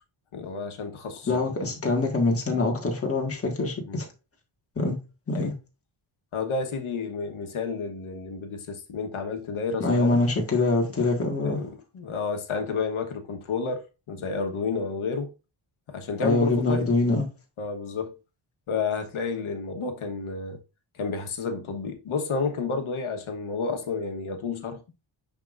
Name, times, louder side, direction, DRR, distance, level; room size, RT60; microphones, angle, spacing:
voice 1, 0.3-1.7 3.9-4.0 5.3-5.5 6.3-10.2 11.4-15.3 15.9-16.9 17.6-18.2 18.7-20.6 20.9-24.8, left 4 dB, 75° left, 1.3 m, -31 dB
voice 2, 1.3-4.1 4.7-5.0 5.3-5.5 9.8-11.6 16.2-17.2, left 2 dB, 30° left, 1.6 m, -24 dB
10.0 x 3.7 x 2.5 m
wide cardioid pair, 180°, 49 cm